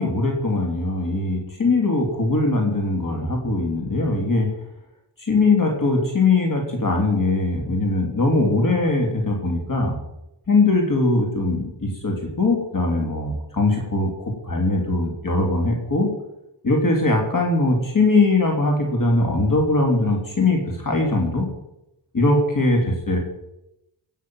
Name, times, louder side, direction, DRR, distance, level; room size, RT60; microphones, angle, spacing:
voice 1, 0.0-4.5 5.2-10.0 10.5-16.1 16.6-21.5 22.1-23.2, left 2 dB, 45° left, 1 dB, 3.2 m, -21 dB
17.0 x 7.3 x 7.7 m, 0.86 s
wide cardioid pair, 80°, 44 cm